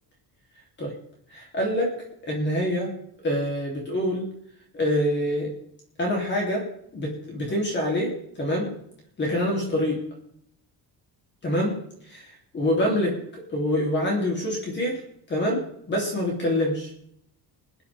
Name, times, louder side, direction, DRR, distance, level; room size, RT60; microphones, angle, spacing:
voice 1, 1.3-1.9 2.2-2.9 3.2-4.3 4.7-5.5 6.0-6.6 6.9-8.7 9.2-10.0 11.4-11.8 12.0-13.2 13.5-15.0 15.3-16.9, left 1 dB, 25° left, -1 dB, 3.0 m, -26 dB
22.5 x 9.7 x 3.4 m, 0.71 s
cardioid pair, 170°, 40 cm